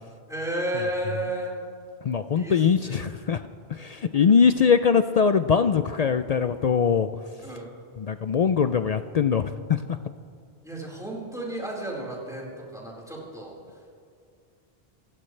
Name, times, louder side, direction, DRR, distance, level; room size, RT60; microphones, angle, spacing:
voice 1, 0.3-1.5 2.3-3.1 4.0-4.1 7.4-7.8 10.6-13.6, right 1 dB, 5° right, -5 dB, 4.4 m, -33 dB
voice 2, 2.0-3.4 3.7-7.1 8.0-9.8, left 6 dB, 60° left, 10 dB, 0.4 m, -22 dB
27.0 x 16.5 x 3.3 m, 2.3 s
omnidirectional pair, 1.1 m